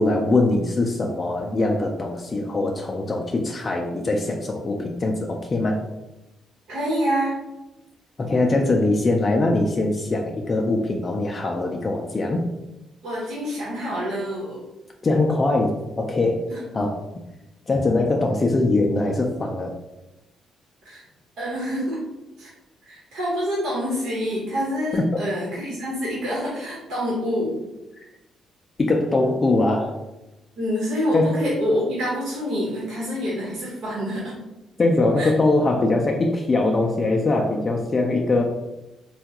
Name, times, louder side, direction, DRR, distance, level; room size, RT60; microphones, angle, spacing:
voice 1, 0.0-5.8 8.2-12.4 15.0-16.4 16.7-17.0 17.7-19.7 24.9-25.1 28.8-30.0 31.1-31.4 34.8-38.4, left 2 dB, 30° left, 1 dB, 0.4 m, -22 dB
voice 2, 6.7-7.4 13.0-14.6 16.5-16.6 20.8-21.0 21.4-22.0 22.4-22.5 22.8-27.5 30.6-34.3 35.2-35.3, equal, 80° right, -7 dB, 1.1 m, -26 dB
3.4 x 2.3 x 2.9 m, 0.99 s
cardioid pair, 90°, 0 cm